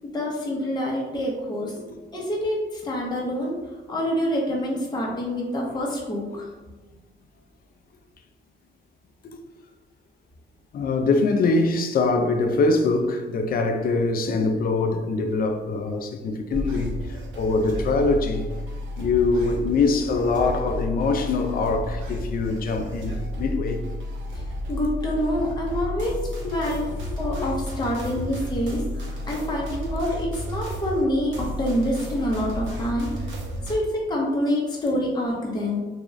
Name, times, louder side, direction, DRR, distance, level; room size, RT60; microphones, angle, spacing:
voice 1, 0.0-1.7 2.1-3.6 3.9-6.5 24.7-26.2 26.5-26.9 27.2-33.1 33.7-35.8, equal, 20° left, 0.8 m, -26 dB
voice 2, 10.7-16.9 17.3-18.5 19.0-23.8 25.7-26.0 26.4-26.6 27.1-27.5, left 3 dB, 50° left, 0.4 m, -23 dB
sound 1, 16.5-33.8, equal, 75° right, 0.8 m, -32 dB
3.6 x 2.3 x 3.1 m
cardioid pair, 90°, 20 cm